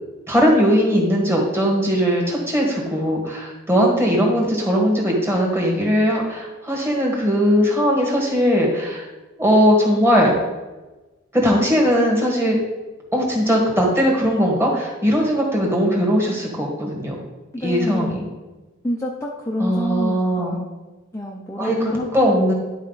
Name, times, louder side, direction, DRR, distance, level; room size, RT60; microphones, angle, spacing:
voice 1, 0.3-9.1 9.4-10.3 11.3-12.6 13.1-17.1 17.6-18.3 19.6-20.6 21.6-22.5, equal, 15° right, -2 dB, 1.6 m, -19 dB
voice 2, 17.5-18.1 18.8-20.6 21.1-22.1 22.4-22.5, equal, 15° left, -2 dB, 0.5 m, -27 dB
11.0 x 4.3 x 4.0 m, 1.2 s
head